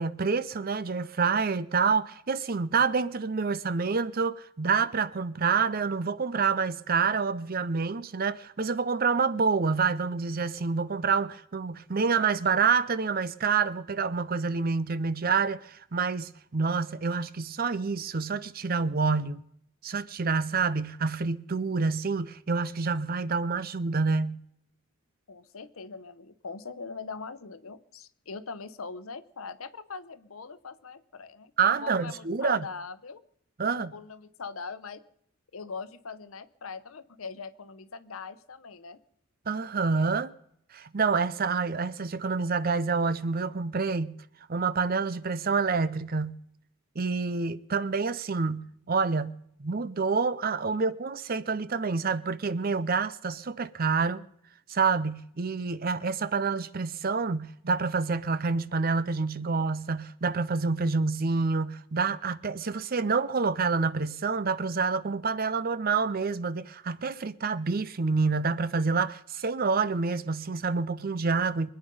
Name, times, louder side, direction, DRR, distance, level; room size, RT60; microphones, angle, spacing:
voice 1, 0.0-19.4 19.8-24.4 31.6-32.7 33.6-33.9 39.5-40.3 40.7-44.2 44.5-46.4 47.0-54.2 54.7-71.7, right 4 dB, 45° right, 0.6 m, -27 dB
voice 2, 25.3-33.2 33.7-35.0 35.5-39.0, left 4 dB, 85° left, 0.9 m, -41 dB
24.5 x 9.0 x 5.4 m
head